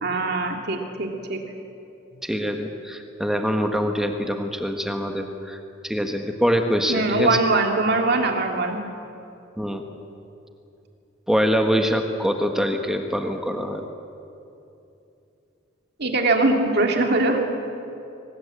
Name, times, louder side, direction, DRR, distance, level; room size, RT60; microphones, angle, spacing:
voice 1, 0.0-1.4 6.9-8.8 16.0-17.4, right 2 dB, 55° right, 3 dB, 2.2 m, -22 dB
voice 2, 2.2-5.6 5.8-7.4 9.6-9.8 11.3-13.8, equal, ahead, 4 dB, 1.3 m, -24 dB
24.0 x 19.0 x 8.5 m, 2.8 s
head